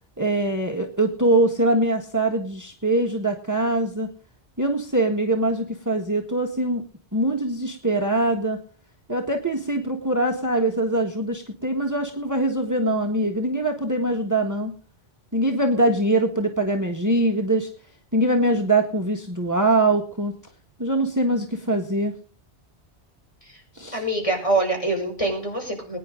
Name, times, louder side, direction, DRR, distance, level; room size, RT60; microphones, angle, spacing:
voice 1, 0.2-4.1 4.6-6.8 7.1-8.6 9.1-14.7 15.3-17.7 18.1-20.3 20.8-22.1 23.7-24.0, right 1 dB, 15° right, 3 dB, 1.6 m, -23 dB
voice 2, 23.9-26.0, right 2 dB, 30° left, 1 dB, 5.4 m, -24 dB
21.0 x 10.0 x 3.8 m, 0.42 s
omnidirectional pair, 1.1 m